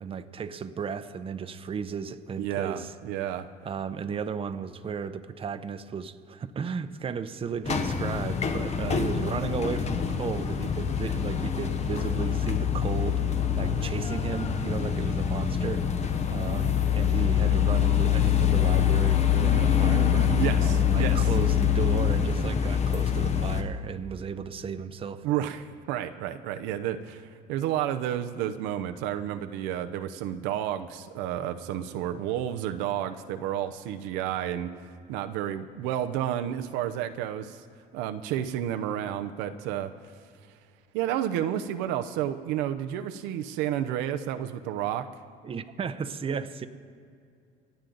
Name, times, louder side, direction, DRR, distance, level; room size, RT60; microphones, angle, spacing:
voice 1, 0.0-2.9 3.6-15.9 16.3-20.4 20.9-25.3 45.4-46.7, right 6 dB, 30° right, 10 dB, 0.7 m, -34 dB
voice 2, 2.4-3.5 8.9-9.0 20.3-21.2 25.2-34.7 35.1-37.6 37.9-39.9 40.9-45.1, right 11 dB, 90° right, 8 dB, 0.7 m, -31 dB
sound 1, 7.6-23.6, left 8 dB, 40° left, 1.1 m, -25 dB
26.0 x 9.0 x 3.9 m, 2.3 s
cardioid pair, 105°, 18 cm